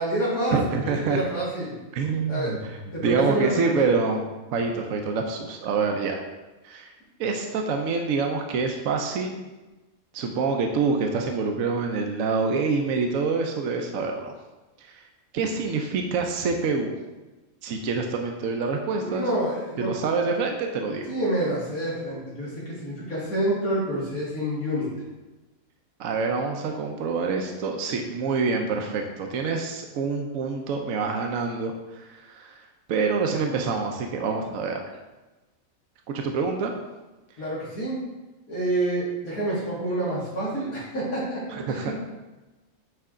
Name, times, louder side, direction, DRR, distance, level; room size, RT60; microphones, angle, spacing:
voice 1, 0.0-0.8 1.1-1.7 2.3-2.5 2.9-3.9 19.0-19.9 21.1-24.9 37.4-38.0 38.5-41.9, right 1 dB, 90° left, -8 dB, 2.7 m, -28 dB
voice 2, 0.5-1.2 1.9-4.2 4.5-6.2 6.6-6.9 7.2-9.5 10.1-14.3 14.8-15.0 15.3-17.0 17.6-19.3 19.8-21.2 26.0-34.8 36.1-36.7 41.5-41.9, right 4 dB, 70° right, 3 dB, 1.1 m, -26 dB
9.0 x 3.4 x 3.7 m, 1.1 s
omnidirectional pair, 1.5 m